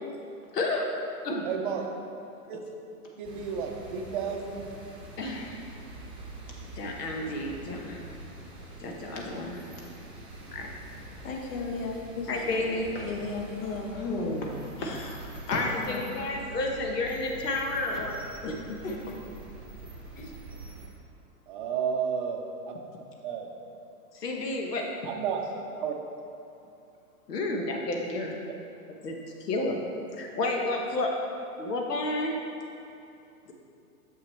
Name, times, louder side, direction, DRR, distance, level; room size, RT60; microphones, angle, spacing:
voice 1, 0.5-0.8 1.2-1.4 5.2-5.6 6.8-8.1 8.8-9.6 10.5-10.7 12.3-12.9 15.5-18.2 18.4-18.5 24.2-24.8 27.3-28.3 29.0-29.2 29.5-29.8 30.2-31.1 31.6-32.3, left 2 dB, 85° left, 1 dB, 1.2 m, -30 dB
voice 2, 1.4-1.9 2.5-2.6 3.2-4.7 21.5-22.4 23.2-23.5 24.8-25.4 25.8-25.9, right 7 dB, 35° right, 2 dB, 0.5 m, -31 dB
sound 1, 3.2-20.9, right 2 dB, 10° right, 0.8 m, -45 dB
voice 3, 11.2-12.6 13.0-13.9 15.6-16.1 17.2-17.5 18.8-19.2 20.2-20.4 25.4-25.5, left 4 dB, 55° left, 1 dB, 1.1 m, -36 dB
voice 4, 13.9-15.6 17.9-18.0, left 2 dB, 40° left, -2 dB, 0.7 m, -34 dB
6.9 x 5.7 x 3.2 m, 2.6 s
hypercardioid pair, 135°, 47 cm